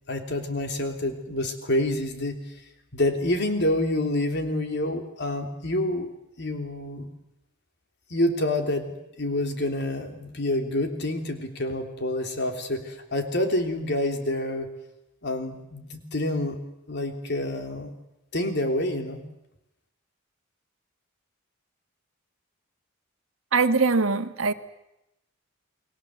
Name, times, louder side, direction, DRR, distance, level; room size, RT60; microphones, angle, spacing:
voice 1, 0.1-2.4 2.9-6.1 6.4-7.1 8.1-14.7 15.2-16.6 16.9-17.9 18.3-19.2, left 1 dB, 55° left, 5 dB, 3.3 m, -27 dB
voice 2, 23.5-24.5, right 4 dB, 80° right, 8 dB, 1.5 m, -22 dB
29.0 x 21.5 x 7.8 m, 0.88 s
head